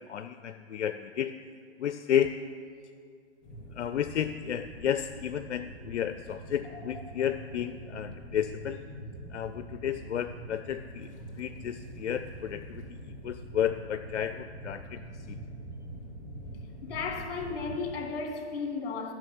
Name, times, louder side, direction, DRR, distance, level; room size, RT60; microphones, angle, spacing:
voice 1, 0.0-1.3 1.8-2.3 3.7-8.8 9.3-15.0 15.3-15.4, left 9 dB, 90° left, 9 dB, 0.5 m, -32 dB
sound 1, 3.4-17.9, right 1 dB, 25° left, 2.7 m, -44 dB
voice 2, 16.8-19.1, left 4 dB, 55° left, 3 dB, 2.2 m, -34 dB
11.0 x 6.4 x 7.2 m, 2.2 s
hypercardioid pair, 135°, 34 cm